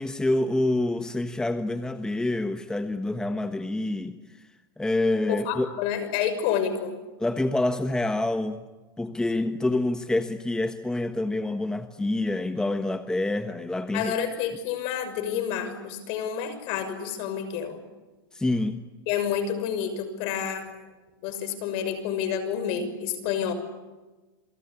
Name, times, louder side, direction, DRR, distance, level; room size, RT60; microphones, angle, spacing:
voice 1, 0.0-4.2 4.8-5.7 7.2-8.6 9.0-14.1 18.3-18.9, left 2 dB, 5° left, 8 dB, 1.3 m, -27 dB
voice 2, 5.3-6.9 13.9-17.8 19.1-20.7 21.2-23.5, left 8 dB, 50° left, 11 dB, 6.2 m, -29 dB
27.5 x 24.5 x 8.6 m, 1.2 s
hypercardioid pair, 125°, 12 cm